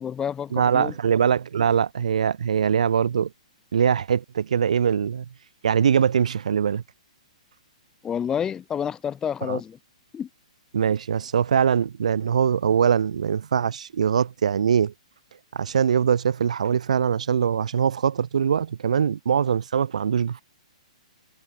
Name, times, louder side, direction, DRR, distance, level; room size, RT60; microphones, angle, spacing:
voice 1, 0.0-0.9 8.0-9.8 10.1-10.3, left 8 dB, 15° left, 1.9 m, -29 dB
voice 2, 0.5-3.3 3.7-5.3 5.6-6.8 9.4-9.6 10.7-14.9 15.5-20.4, right 7 dB, 70° right, 0.6 m, -22 dB
hypercardioid pair, 125°, 4 cm